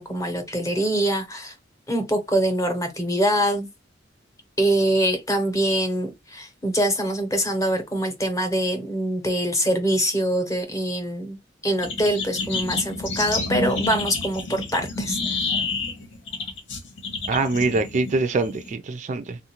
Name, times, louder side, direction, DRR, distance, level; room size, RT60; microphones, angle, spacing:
voice 1, 0.0-1.5 1.9-3.7 4.6-11.4 11.6-15.2, right 1 dB, 15° left, 0.8 m, -24 dB
sound 1, 11.8-18.7, left 3 dB, 90° left, 1.2 m, -29 dB
voice 2, 17.3-19.4, right 3 dB, 40° right, 0.3 m, -24 dB
3.5 x 2.4 x 2.9 m
head